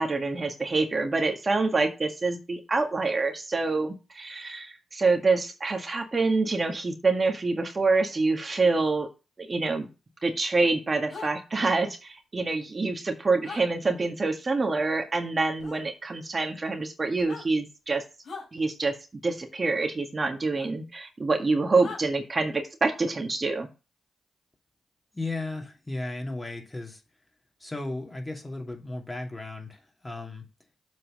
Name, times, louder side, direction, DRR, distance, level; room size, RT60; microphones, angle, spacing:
voice 1, 0.0-9.1 9.4-9.9 10.2-18.0 18.5-19.0 19.2-23.7, right 3 dB, 40° right, 1.7 m, -26 dB
sound 1, 11.1-11.3 13.4-13.6 15.6-15.8 17.1-17.5 18.2-18.5 20.5-20.7 21.8-22.0, left 4 dB, 65° left, 4.0 m, -40 dB
voice 2, 25.1-27.0 27.6-30.5, left 2 dB, 20° left, 2.8 m, -35 dB
7.6 x 4.3 x 6.6 m
supercardioid pair, 45°, 0 cm